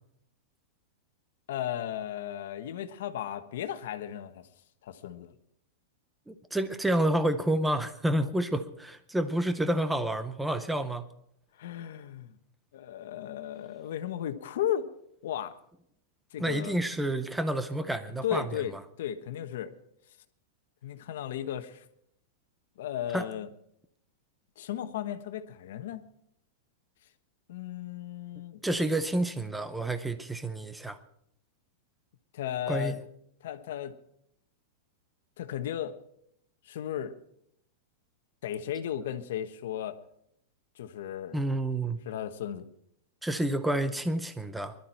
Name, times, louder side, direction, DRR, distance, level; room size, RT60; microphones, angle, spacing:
voice 1, 1.5-4.5 4.8-5.3 11.5-12.4 12.7-14.9 15.2-15.5 16.3-16.7 18.2-19.7 20.8-21.8 22.8-23.5 24.6-26.0 27.5-28.6 32.3-33.0 33.4-34.0 35.4-35.9 36.6-37.1 38.4-40.0 40.8-41.4 42.0-42.7, left 10 dB, 60° left, 8 dB, 1.3 m, -35 dB
voice 2, 6.3-11.1 16.4-18.6 23.1-23.3 28.6-31.0 32.7-33.0 41.3-42.0 43.2-44.8, right 1 dB, 5° right, 11 dB, 0.6 m, -29 dB
20.5 x 12.5 x 4.5 m, 0.71 s
supercardioid pair, 180°, 0 cm